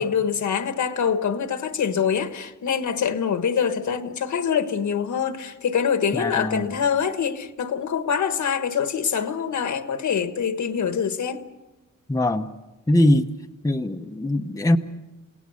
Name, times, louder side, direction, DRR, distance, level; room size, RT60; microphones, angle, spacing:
voice 1, 0.0-11.4, left 7 dB, 70° left, 1.4 m, -25 dB
voice 2, 6.1-6.6 12.1-12.5 12.9-13.2 13.6-14.8, left 1 dB, 10° left, 0.8 m, -21 dB
29.5 x 18.0 x 6.4 m
wide cardioid pair, 140°, 31 cm